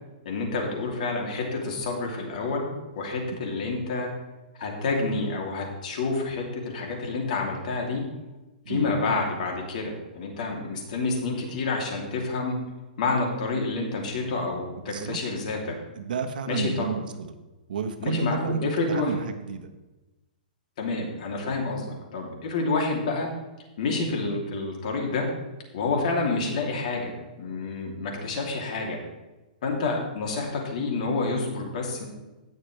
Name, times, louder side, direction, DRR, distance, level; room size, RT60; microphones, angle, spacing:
voice 1, 0.2-4.1 4.5-8.0 8.7-12.6 13.0-15.8 16.5-16.9 18.0-19.1 20.8-23.3 23.8-25.3 25.7-29.0 29.6-32.1, left 3 dB, 55° left, 0 dB, 2.9 m, -28 dB
voice 2, 14.9-15.2 15.9-17.3 17.7-19.7, right 5 dB, 70° right, 6 dB, 1.2 m, -31 dB
17.5 x 6.7 x 3.3 m, 1.1 s
hypercardioid pair, 160°, 5 cm